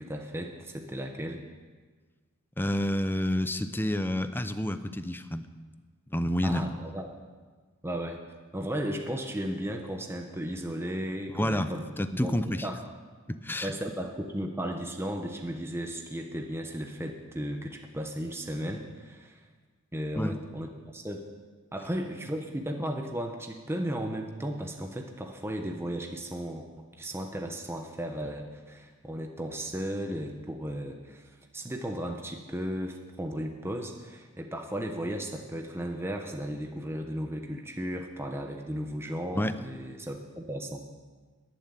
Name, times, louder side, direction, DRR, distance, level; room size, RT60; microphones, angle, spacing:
voice 1, 0.0-1.4 6.4-7.1 7.8-8.2 8.5-11.9 12.2-12.3 12.6-12.8 13.6-19.4 19.9-21.3 21.7-40.8, equal, 10° right, 3 dB, 1.0 m, -35 dB
voice 2, 2.6-5.5 6.1-6.7 11.4-11.7 12.0-12.7 13.3-13.7 20.2-20.3 39.4-39.5, left 1 dB, 10° left, 11 dB, 0.7 m, -29 dB
21.5 x 7.5 x 8.4 m, 1.4 s
head